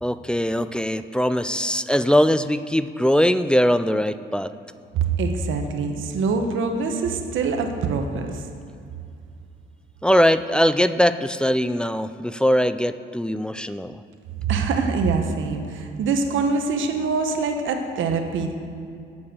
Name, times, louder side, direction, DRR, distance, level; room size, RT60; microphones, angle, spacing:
voice 1, 0.0-4.5 10.0-14.0, equal, 5° left, 12 dB, 0.3 m, -21 dB
voice 2, 4.9-8.4 14.5-18.5, right 4 dB, 75° right, 5 dB, 1.1 m, -24 dB
8.5 x 7.0 x 6.5 m, 2.5 s
cardioid pair, 90°, 20 cm